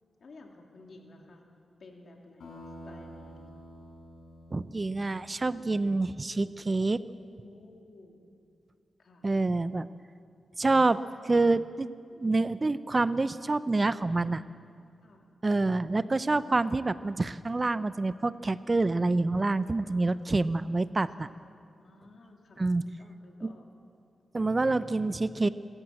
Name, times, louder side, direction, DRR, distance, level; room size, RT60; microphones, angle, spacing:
voice 1, 0.2-1.5 1.8-3.6 7.4-8.3 9.0-9.3 15.0-15.3 19.4-20.3 21.0-21.3 21.8-23.7, left 2 dB, 65° left, 1 dB, 3.1 m, -54 dB
sound 1, 2.4-6.7, equal, 85° left, 6.2 m, -49 dB
voice 2, 4.5-7.0 9.2-9.9 10.6-11.9 12.2-14.4 15.4-21.3 22.6-22.8 23.4-23.5 24.3-25.5, right 3 dB, 35° right, 15 dB, 0.6 m, -27 dB
26.5 x 13.5 x 7.8 m, 2.3 s
cardioid pair, 60°, 0 cm